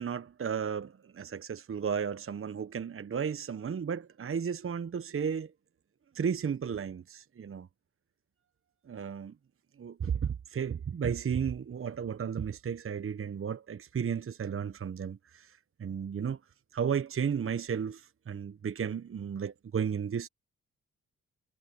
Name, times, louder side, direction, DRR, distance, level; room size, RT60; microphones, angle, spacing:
voice 1, 0.0-5.5 6.1-7.7 8.9-9.3 9.8-16.4 16.7-20.3, right 7 dB, 40° right, 1.1 m, -34 dB
hypercardioid pair, 45°, 33 cm